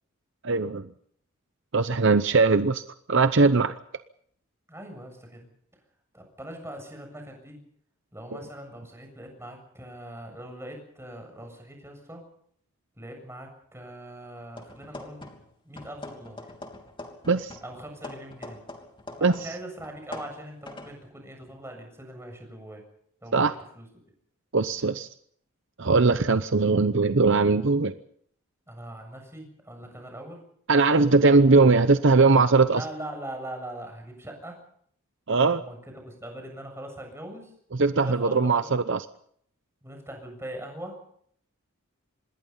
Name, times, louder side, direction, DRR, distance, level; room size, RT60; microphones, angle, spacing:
voice 1, 0.4-0.9 1.7-2.8 3.1-3.7 17.3-17.6 19.2-19.3 23.3-23.5 24.5-25.1 25.8-27.9 30.7-32.8 35.3-35.6 37.7-39.0, right 3 dB, 60° right, 11 dB, 0.8 m, -20 dB
voice 2, 4.7-5.5 6.1-7.6 8.1-12.2 13.0-15.3 15.6-16.5 17.6-18.6 19.2-22.8 23.2-23.9 28.7-30.4 32.7-34.6 35.4-37.5 38.0-38.7 39.8-41.0, right 1 dB, 10° right, 3 dB, 7.3 m, -41 dB
sound 1, 14.5-15.5 15.8-19.5 19.8-21.0, left 2 dB, 25° left, 3.1 m, -43 dB
26.5 x 20.5 x 5.6 m, 0.65 s
head